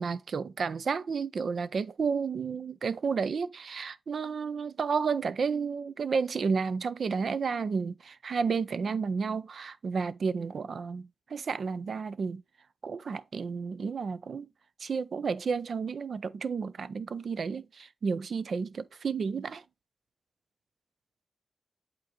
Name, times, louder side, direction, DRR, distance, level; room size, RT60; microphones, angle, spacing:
voice 1, 0.0-12.4 12.8-14.5 14.8-19.6, right 5 dB, 75° right, 0.5 m, -31 dB
8.4 x 3.9 x 3.9 m
cardioid pair, 55°, 0 cm